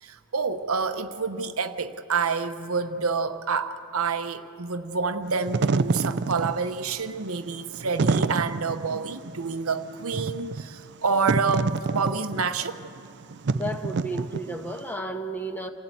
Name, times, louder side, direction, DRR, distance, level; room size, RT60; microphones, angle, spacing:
voice 1, 0.0-12.8, right 5 dB, 65° right, 9 dB, 1.0 m, -28 dB
Wind / Fire, 5.3-14.8, right 4 dB, 50° right, 0.5 m, -28 dB
voice 2, 13.5-15.7, right 1 dB, 10° left, 5 dB, 1.3 m, -32 dB
28.0 x 15.5 x 9.2 m, 2.6 s
head